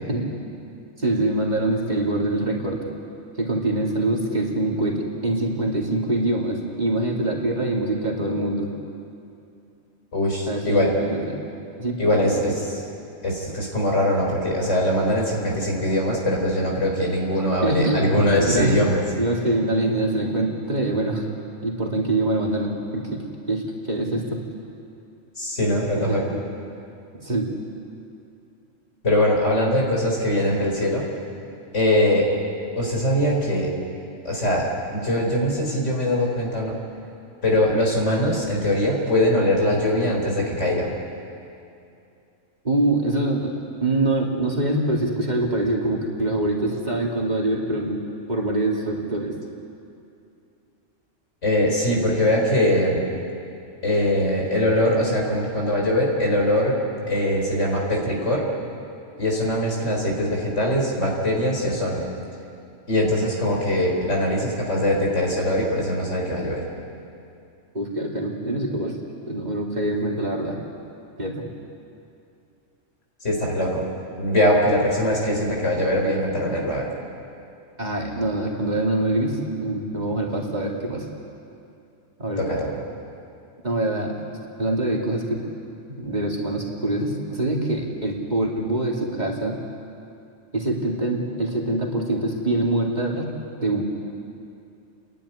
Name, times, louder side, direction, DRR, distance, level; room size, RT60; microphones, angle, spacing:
voice 1, 1.0-2.8 3.4-8.7 10.5-11.4 11.8-12.0 12.2-12.4 17.6-18.8 19.2-21.2 21.6-24.4 25.9-26.4 27.1-27.5 42.6-43.5 43.8-48.0 48.3-49.4 67.7-69.0 69.3-70.6 71.2-71.5 77.8-81.1 82.2-82.6 83.6-84.1 84.6-85.4 85.9-89.6 90.5-93.3 93.6-93.8, right 2 dB, 35° right, -2 dB, 2.6 m, -24 dB
voice 2, 10.1-10.9 12.0-12.8 13.2-19.0 25.4-26.2 29.0-31.0 31.7-32.3 32.8-33.7 34.2-34.7 34.9-36.7 37.4-40.9 51.4-53.1 53.8-56.8 57.1-58.4 59.2-62.0 62.9-66.6 73.2-73.8 74.2-76.9 82.4-82.7, left 1 dB, 65° left, -1 dB, 4.4 m, -22 dB
29.5 x 11.5 x 9.9 m, 2.6 s
omnidirectional pair, 1.3 m